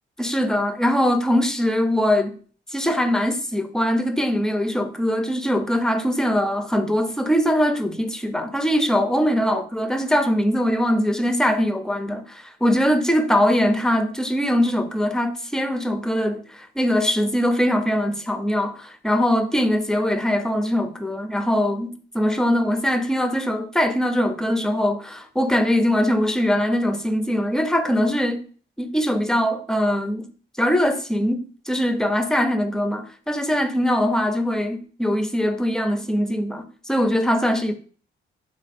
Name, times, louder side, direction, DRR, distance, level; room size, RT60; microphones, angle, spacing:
voice 1, 0.2-2.4 2.7-28.5 28.8-30.2 30.6-37.7, equal, 5° left, 0.4 m, -22 dB
3.4 x 3.3 x 2.5 m
cardioid pair, 90°, 20 cm